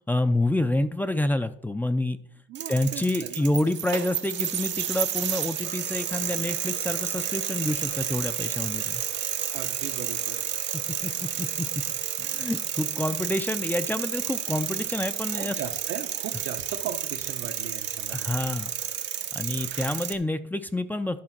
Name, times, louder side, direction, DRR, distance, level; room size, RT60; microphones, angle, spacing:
voice 1, 0.0-2.2 2.7-9.0 11.0-11.7 12.2-15.6 18.1-18.7 19.3-21.2, left 1 dB, 10° left, 10 dB, 0.5 m, -28 dB
sound 1, 2.5-20.1, right 9 dB, 65° right, 0.8 m, -31 dB
voice 2, 2.5-3.4 9.5-10.5 15.3-18.3, right 8 dB, 80° right, 5 dB, 1.1 m, -37 dB
11.5 x 3.8 x 5.9 m, 0.63 s
cardioid pair, 90°, 20 cm